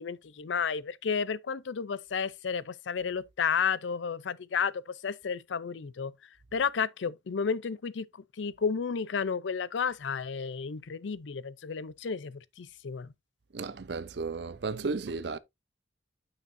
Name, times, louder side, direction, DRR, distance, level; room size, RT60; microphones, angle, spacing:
voice 1, 0.0-4.7 5.0-6.1 6.5-8.0 8.4-13.1, left 6 dB, 85° left, 0.5 m, -32 dB
voice 2, 13.5-15.4, right 4 dB, 65° right, 0.6 m, -34 dB
9.3 x 5.8 x 2.6 m
head